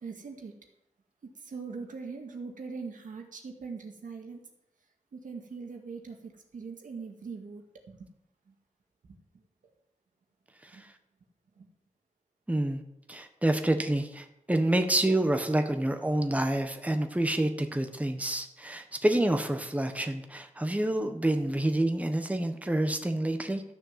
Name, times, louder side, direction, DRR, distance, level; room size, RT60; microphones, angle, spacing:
voice 1, 0.0-0.5 1.2-4.4 5.1-8.0 8.5-8.6 9.1-9.2 10.7-10.8 11.6-11.7, right 4 dB, 90° right, 2 dB, 2.0 m, -41 dB
voice 2, 12.5-12.8 13.1-23.6, right 1 dB, 10° right, 6 dB, 1.2 m, -28 dB
13.5 x 6.7 x 7.5 m, 0.83 s
wide cardioid pair, 100°, 13 cm